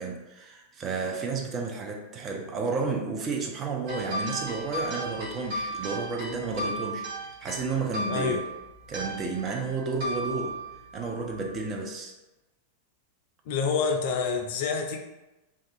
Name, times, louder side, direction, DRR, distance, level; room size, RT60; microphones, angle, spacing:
voice 1, 0.0-7.1 7.4-8.4 8.9-10.6 10.9-12.1, right 4 dB, 30° right, 1 dB, 0.4 m, -31 dB
sound 1, 3.9-11.8, right 1 dB, 50° right, 0.9 m, -36 dB
voice 2, 8.1-8.4 13.5-15.0, left 5 dB, 50° left, 3 dB, 0.3 m, -27 dB
2.4 x 2.3 x 2.5 m, 1.0 s
figure-of-eight pair, 90°, 0 cm